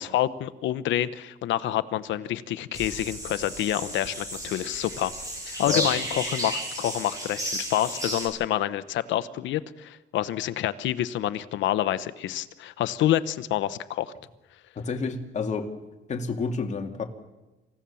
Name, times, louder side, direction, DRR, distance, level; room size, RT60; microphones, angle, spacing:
voice 1, 0.0-5.1 5.5-14.1, left 12 dB, 90° left, 15 dB, 0.9 m, -28 dB
sound 1, 2.7-8.3, right 1 dB, 20° right, 7.0 m, -33 dB
voice 2, 14.8-15.7 16.1-17.0, left 4 dB, 40° left, 4 dB, 2.3 m, -29 dB
27.5 x 16.0 x 7.1 m, 1.1 s
cardioid pair, 135°, 19 cm